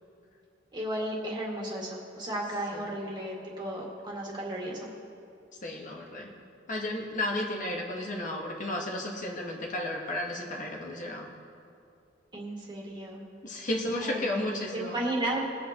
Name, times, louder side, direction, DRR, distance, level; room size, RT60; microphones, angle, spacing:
voice 1, 0.7-4.9 12.3-13.2 14.0-15.4, right 1 dB, 25° right, -3 dB, 2.0 m, -34 dB
voice 2, 5.6-6.3 6.7-11.3 13.4-15.0, left 1 dB, 45° left, 0 dB, 1.3 m, -33 dB
23.0 x 8.3 x 2.9 m, 2.5 s
head